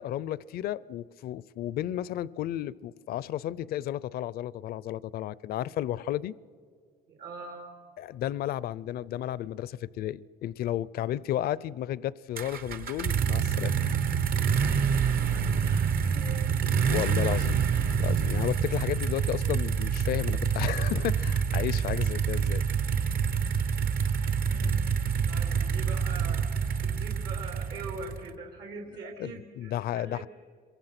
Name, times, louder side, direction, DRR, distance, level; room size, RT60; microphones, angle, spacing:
voice 1, 0.0-6.3 8.0-13.7 16.9-17.6 18.0-22.6 24.6-24.7 29.2-30.3, left 12 dB, 65° left, 21 dB, 0.5 m, -33 dB
voice 2, 7.1-7.9 14.6-14.9 15.3-16.7 18.4-18.6 24.5-30.2, right 4 dB, 80° right, 1 dB, 3.3 m, -43 dB
sound 1, 12.4-28.3, right 6 dB, 60° right, 1.2 m, -27 dB
26.5 x 23.0 x 5.9 m, 2.1 s
cardioid pair, 110°, 17 cm